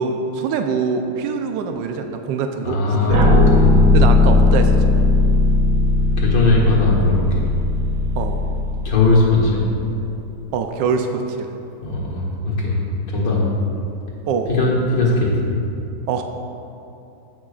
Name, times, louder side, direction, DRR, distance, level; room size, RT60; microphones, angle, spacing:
voice 1, 0.0-3.4 3.9-5.0 8.2-8.4 10.5-11.5 14.3-14.5 16.1-16.2, right 5 dB, 80° right, 5 dB, 1.3 m, -24 dB
voice 2, 2.6-4.0 6.2-7.4 8.8-9.6 11.8-12.8 13.1-13.4 14.5-15.5, left 3 dB, 75° left, -5 dB, 2.3 m, -19 dB
sound 1, 3.1-10.0, left 2 dB, 60° right, 1.0 m, -17 dB
16.5 x 6.0 x 2.4 m, 2.9 s
omnidirectional pair, 2.0 m